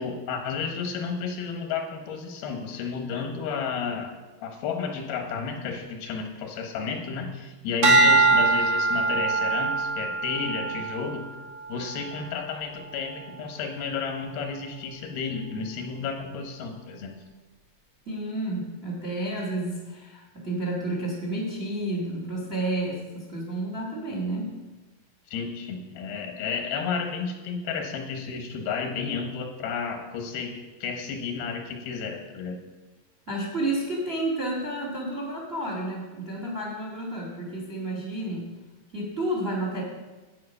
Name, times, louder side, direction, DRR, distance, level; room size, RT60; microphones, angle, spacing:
voice 1, 0.0-4.1 4.4-11.2 11.7-17.2 25.3-32.6, left 5 dB, 85° left, 4 dB, 3.2 m, -32 dB
sound 1, 7.8-12.3 12.8-13.2, right 3 dB, 50° right, 1.2 m, -23 dB
voice 2, 18.0-24.5 33.3-38.5 38.9-39.8, right 1 dB, 25° right, -1 dB, 1.3 m, -31 dB
9.5 x 8.5 x 5.4 m, 1.2 s
omnidirectional pair, 4.2 m